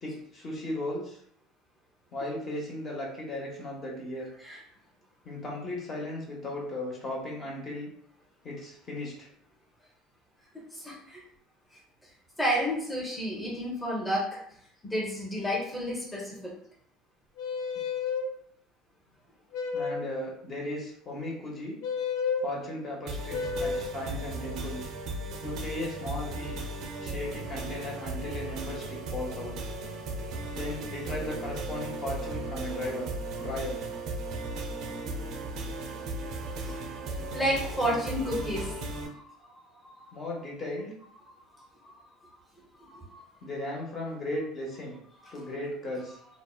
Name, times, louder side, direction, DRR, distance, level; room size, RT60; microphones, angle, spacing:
voice 1, 0.0-1.2 2.1-4.3 5.2-7.9 8.4-9.3 19.7-21.8 22.4-24.8 25.4-26.6 27.0-29.5 30.5-33.1 33.4-33.8 40.1-40.9 43.4-45.0 45.3-46.2, left 1 dB, 40° left, -2 dB, 0.8 m, -36 dB
voice 2, 10.5-11.2 12.4-14.3 14.8-16.6 36.7-36.8 37.0-39.3 39.8-39.9 41.8-41.9 42.8-43.2, equal, 5° left, -4 dB, 0.7 m, -31 dB
sound 1, 17.4-18.3 19.5-20.1 21.8-22.5 23.3-24.0, left 5 dB, 70° left, 0.3 m, -31 dB
sound 2, 23.1-39.1, right 2 dB, 60° right, 0.4 m, -36 dB
2.7 x 2.1 x 2.2 m, 0.67 s
supercardioid pair, 100°, 0 cm